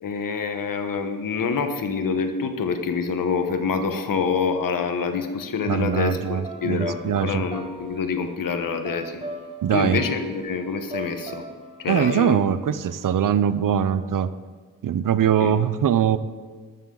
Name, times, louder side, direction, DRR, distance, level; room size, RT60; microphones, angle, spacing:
voice 1, 0.0-9.2 9.7-11.4 11.8-12.4 15.4-15.5, left 5 dB, 70° left, 7 dB, 1.3 m, -26 dB
sound 1, 5.6-13.9, right 2 dB, 15° right, 1.3 m, -40 dB
voice 2, 5.7-7.4 9.6-10.0 11.9-14.3 14.8-16.2, right 9 dB, 70° right, 14 dB, 0.6 m, -22 dB
13.0 x 13.0 x 3.9 m, 1.5 s
wide cardioid pair, 135°, 34 cm